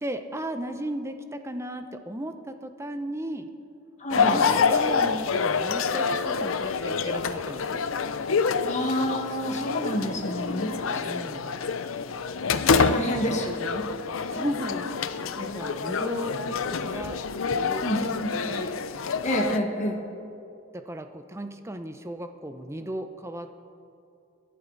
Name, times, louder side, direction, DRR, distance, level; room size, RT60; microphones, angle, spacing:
voice 1, 0.0-3.5 4.1-7.9 11.0-11.5 12.5-13.4 14.3-17.2 17.5-18.7 20.7-23.7, right 1 dB, 15° right, 7 dB, 0.8 m, -36 dB
voice 2, 4.0-4.5 8.6-11.1 12.7-13.9 17.8-18.3 19.2-20.0, equal, 35° left, 0 dB, 1.7 m, -28 dB
sound 1, 4.1-19.6, left 5 dB, 75° left, 0.6 m, -27 dB
26.5 x 11.5 x 4.1 m, 2.6 s
head